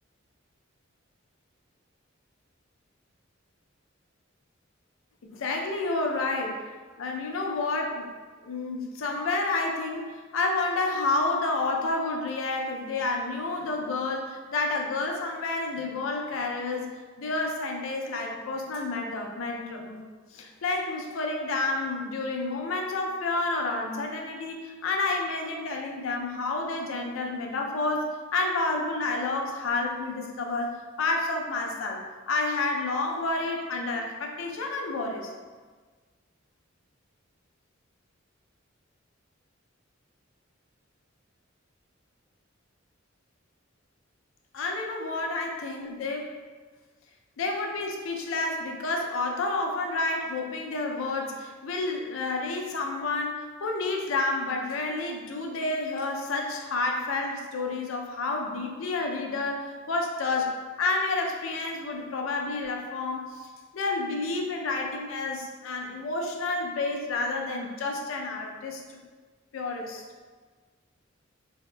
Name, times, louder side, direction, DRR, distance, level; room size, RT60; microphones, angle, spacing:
voice 1, 5.3-6.7 7.0-8.1 8.4-16.9 17.2-20.0 20.3-35.3 44.5-46.3 47.4-60.5 60.8-69.0 69.5-70.0, left 3 dB, 80° left, 2 dB, 0.4 m, -30 dB
3.9 x 2.7 x 2.2 m, 1.4 s
head